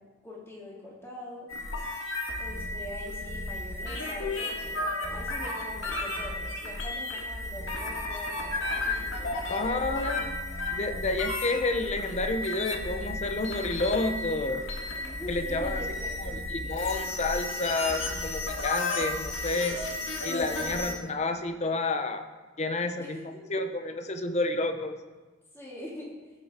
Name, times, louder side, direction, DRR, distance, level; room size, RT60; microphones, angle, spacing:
voice 1, 0.2-1.5 2.4-10.2 14.9-16.6 20.6-21.0 23.0-23.5 25.5-26.1, left 1 dB, 15° left, -4 dB, 2.8 m, -44 dB
sound 1, 1.5-20.9, left 2 dB, 80° left, 2.0 m, -33 dB
sound 2, 8.6-16.4, equal, 50° left, 3.3 m, -47 dB
voice 2, 9.5-10.3 10.7-14.6 15.3-15.8 16.2-19.8 20.2-22.3 22.6-23.2 23.5-24.9, left 2 dB, 35° left, 7 dB, 0.8 m, -30 dB
16.5 x 6.5 x 4.4 m, 1.3 s
head